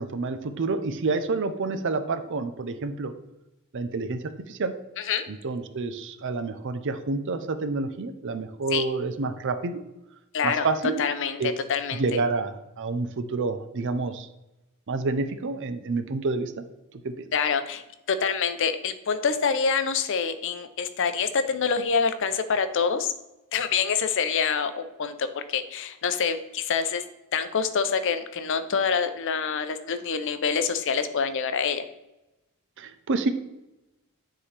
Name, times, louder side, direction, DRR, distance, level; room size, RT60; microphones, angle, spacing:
voice 1, 0.0-3.1 3.7-4.7 5.3-9.8 10.4-11.0 11.4-11.5 11.9-14.3 14.9-16.6 17.0-17.1 32.8-33.3, right 3 dB, 60° right, 9 dB, 0.6 m, -28 dB
voice 2, 10.3-10.7 11.0-11.4 11.7-12.0 17.3-23.1 23.5-27.0 27.3-31.8, left 6 dB, 60° left, 10 dB, 0.6 m, -26 dB
9.6 x 3.8 x 3.3 m, 0.95 s
head